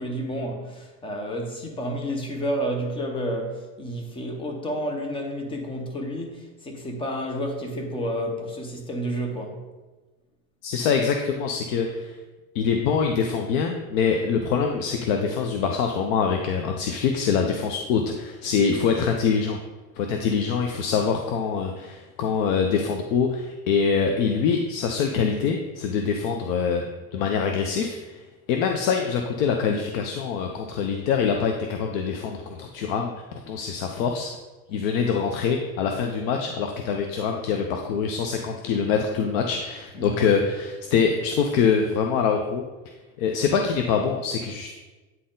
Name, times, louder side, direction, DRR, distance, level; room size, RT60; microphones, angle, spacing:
voice 1, 0.0-9.6 39.9-40.2, equal, 10° left, 2 dB, 0.8 m, -30 dB
voice 2, 10.6-12.2 12.5-19.6 20.0-26.8 27.1-34.3 34.7-42.6 43.2-44.7, left 6 dB, 65° left, 3 dB, 0.8 m, -24 dB
9.0 x 4.3 x 3.8 m, 1.2 s
cardioid pair, 160°, 42 cm